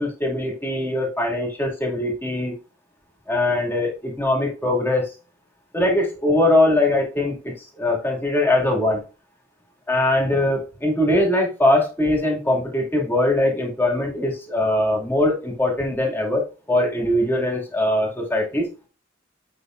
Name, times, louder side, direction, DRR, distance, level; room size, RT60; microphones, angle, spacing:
voice 1, 0.0-2.5 3.3-5.1 5.7-9.0 9.9-18.7, left 1 dB, 10° left, -1 dB, 2.2 m, -21 dB
8.6 x 5.8 x 2.5 m, 0.34 s
head